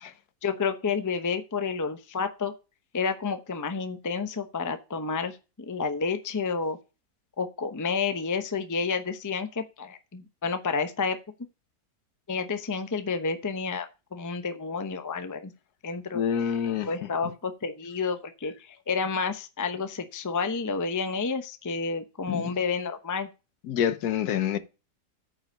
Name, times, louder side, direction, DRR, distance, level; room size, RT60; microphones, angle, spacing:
voice 1, 0.4-2.5 2.9-6.8 7.4-11.2 12.3-15.5 15.8-16.2 16.8-23.3, left 5 dB, 20° left, 0.5 m, -30 dB
voice 2, 16.1-16.9 22.3-22.5 23.7-24.6, left 9 dB, 75° left, 1.4 m, -27 dB
9.1 x 5.0 x 6.4 m
omnidirectional pair, 1.7 m